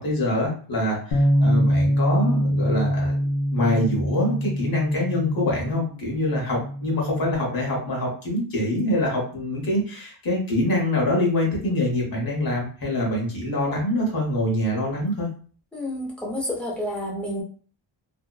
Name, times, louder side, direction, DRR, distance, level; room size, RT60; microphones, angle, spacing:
voice 1, 0.0-3.2 3.5-15.3, left 1 dB, 50° left, -2 dB, 1.0 m, -25 dB
Bass guitar, 1.1-7.4, equal, 85° left, 0.7 m, -24 dB
voice 2, 15.7-17.4, left 1 dB, ahead, -4 dB, 0.6 m, -29 dB
2.7 x 2.1 x 2.2 m, 0.42 s
wide cardioid pair, 170°, 45 cm